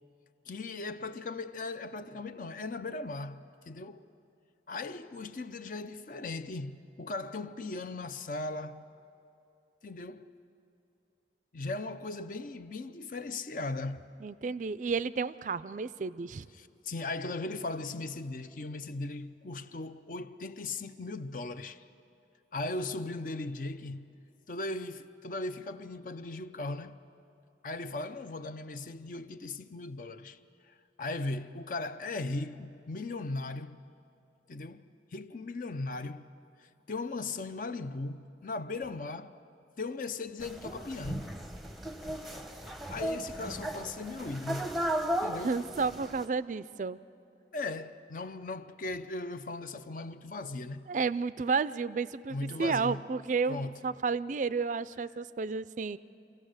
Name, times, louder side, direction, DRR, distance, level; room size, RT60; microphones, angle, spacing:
voice 1, 0.5-4.0 4.7-8.9 9.8-10.3 11.5-14.0 14.5-14.6 16.6-21.8 22.5-24.1 24.5-27.0 27.6-30.4 30.7-33.8 34.5-34.8 35.1-36.3 36.9-39.4 39.8-41.3 42.9-44.8 45.2-45.5 47.5-50.9 52.3-53.0 53.5-53.8, left 2 dB, 50° left, 0.6 m, -38 dB
voice 2, 14.2-16.5 45.4-47.0 50.9-56.0, right 4 dB, 45° right, 0.4 m, -32 dB
sound 1, 40.4-46.3, right 1 dB, ahead, 0.8 m, -36 dB
25.5 x 16.0 x 6.5 m
head